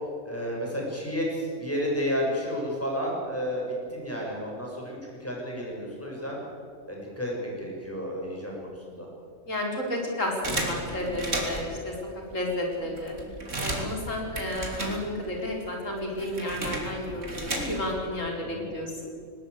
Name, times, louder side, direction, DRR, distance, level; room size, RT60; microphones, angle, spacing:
voice 1, 0.3-6.4 6.9-7.3 7.6-9.1 18.4-18.7, equal, 10° left, -2 dB, 7.1 m, -31 dB
voice 2, 9.5-11.9 12.3-13.2 13.6-18.9, left 1 dB, 85° left, 0 dB, 4.8 m, -32 dB
sound 1, 10.4-11.8 12.4-12.5 12.7-15.4 15.7-18.0, right 2 dB, 75° right, 3.5 m, -33 dB
19.5 x 19.5 x 8.3 m, 2.3 s
omnidirectional pair, 1.3 m